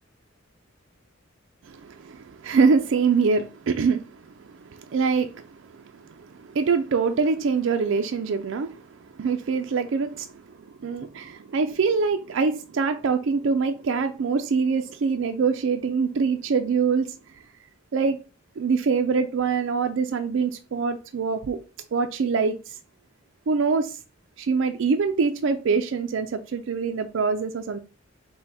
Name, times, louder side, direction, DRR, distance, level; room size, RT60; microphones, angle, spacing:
voice 1, 1.6-8.9 9.1-10.4 10.8-17.1 17.9-18.2 18.6-21.6 21.9-22.8 23.5-24.0 24.4-27.8, right 5 dB, 70° right, 0.4 m, -24 dB
5.5 x 2.2 x 4.1 m
head